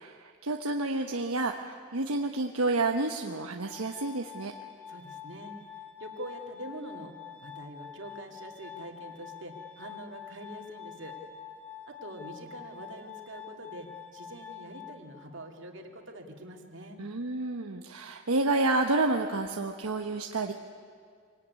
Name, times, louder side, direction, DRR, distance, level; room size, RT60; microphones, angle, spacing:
voice 1, 0.0-4.5 17.0-20.5, right 2 dB, 85° right, 3 dB, 1.1 m, -29 dB
Glass, 3.6-15.6, left 8 dB, 5° left, 2.2 m, -46 dB
voice 2, 4.9-5.6 6.0-7.1 7.4-11.2 11.9-17.0, right 1 dB, 55° right, 2 dB, 2.5 m, -44 dB
25.0 x 18.5 x 9.6 m, 2.1 s
head